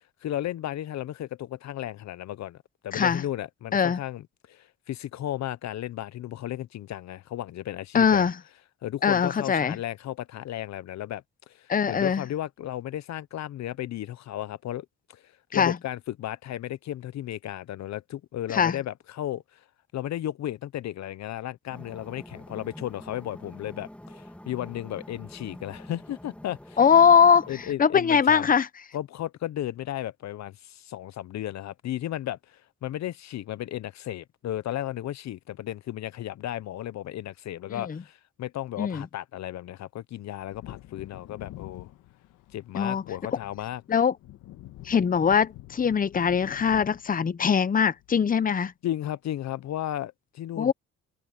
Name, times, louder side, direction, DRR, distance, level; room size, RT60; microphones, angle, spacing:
voice 1, 0.2-2.6 2.8-8.3 8.8-15.2 15.5-19.6 19.9-26.8 27.5-28.5 28.9-41.9 42.5-43.8 48.8-50.7, left 12 dB, 65° left, 0.7 m, -34 dB
voice 2, 2.9-3.2 3.7-4.0 7.9-8.3 9.0-9.8 11.7-12.2 15.5-15.8 18.5-18.8 26.8-28.7 37.8-38.0 38.8-39.1 42.7-43.0 43.9-44.1 44.8-48.7 50.6-50.7, left 7 dB, 30° left, 0.8 m, -22 dB
sound 1, 21.7-27.7, left 1 dB, 5° left, 2.0 m, -46 dB
Wind / Thunder, 40.4-48.6 48.9-49.0, left 15 dB, 90° left, 1.5 m, -47 dB
cardioid pair, 90°, 30 cm